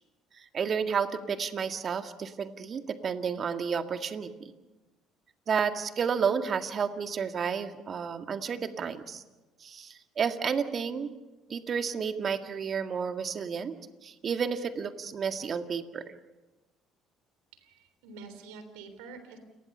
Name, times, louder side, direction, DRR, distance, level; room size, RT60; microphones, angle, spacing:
voice 1, 0.4-4.5 5.5-9.2 9.6-11.1 11.5-13.8 14.0-16.2, right 6 dB, 45° right, 7 dB, 1.9 m, -31 dB
voice 2, 17.5-19.4, right 4 dB, 75° right, 9 dB, 3.6 m, -47 dB
29.5 x 20.0 x 5.6 m, 1.1 s
hypercardioid pair, 60°, 0 cm